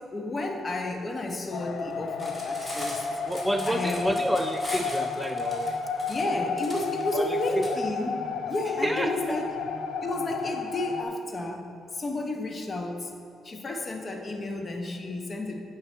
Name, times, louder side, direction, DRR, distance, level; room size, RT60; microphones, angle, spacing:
voice 1, 0.0-3.0 3.7-4.1 6.1-9.5 10.0-13.1 13.4-15.6, left 2 dB, 35° left, 3 dB, 1.0 m, -32 dB
sound 1, 1.5-11.0, left 4 dB, 70° left, 0.6 m, -32 dB
Cutlery silverware, 2.1-7.7, left 1 dB, 15° left, 1.7 m, -40 dB
voice 2, 3.2-5.8 7.1-7.8 8.8-9.1, equal, 5° right, 7 dB, 0.3 m, -29 dB
9.2 x 5.6 x 4.5 m, 2.5 s
cardioid pair, 90°, 0 cm